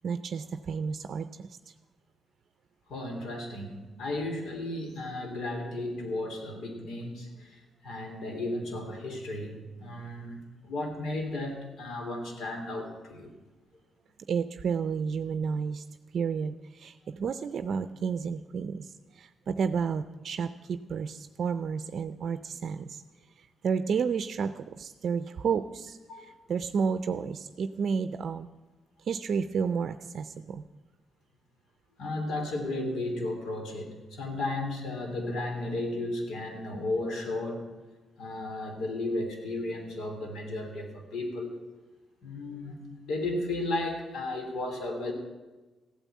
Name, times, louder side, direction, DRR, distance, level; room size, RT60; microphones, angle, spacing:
voice 1, 0.0-1.7 14.3-15.9 16.1-23.0 23.4-28.5 29.0-30.6, right 6 dB, 55° right, 11 dB, 0.5 m, -31 dB
voice 2, 2.9-13.3 26.1-26.3 32.0-37.7 38.2-41.6 42.2-45.1, left 2 dB, 80° left, 4 dB, 3.2 m, -34 dB
15.0 x 9.1 x 8.4 m, 1.2 s
cardioid pair, 110°, 0 cm